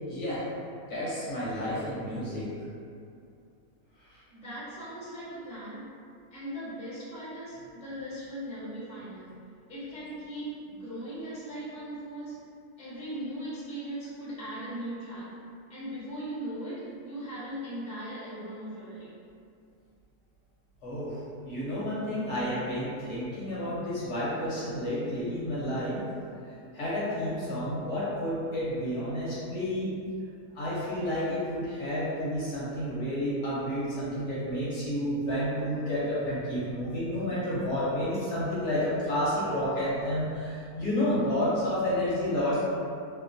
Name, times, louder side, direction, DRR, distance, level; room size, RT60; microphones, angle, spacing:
voice 1, 0.1-0.5 0.8-2.4 4.1-4.2 20.8-26.0 26.7-29.9 30.5-42.6, equal, 60° left, -10 dB, 0.8 m, -30 dB
voice 2, 4.3-5.9 6.3-9.4 9.7-12.4 12.8-15.4 15.7-19.1, right 1 dB, 10° left, -11 dB, 0.3 m, -39 dB
2.9 x 2.1 x 2.5 m, 2.4 s
omnidirectional pair, 1.7 m